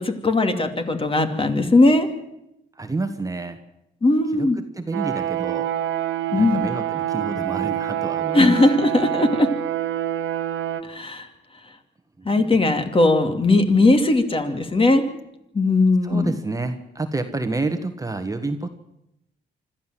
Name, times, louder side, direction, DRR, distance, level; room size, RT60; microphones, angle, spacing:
voice 1, 0.0-2.1 4.0-4.6 6.3-6.6 8.3-9.5 10.9-11.3 12.2-15.0 15.5-16.3, left 2 dB, 25° left, 6 dB, 2.6 m, -18 dB
voice 2, 2.7-3.6 4.3-5.7 6.3-8.5 12.2-12.6 16.0-18.7, right 3 dB, 15° right, 7 dB, 1.5 m, -29 dB
sound 1, 4.9-10.8, right 12 dB, 75° right, 1.6 m, -26 dB
25.5 x 13.0 x 7.7 m, 0.85 s
cardioid pair, 90°, 20 cm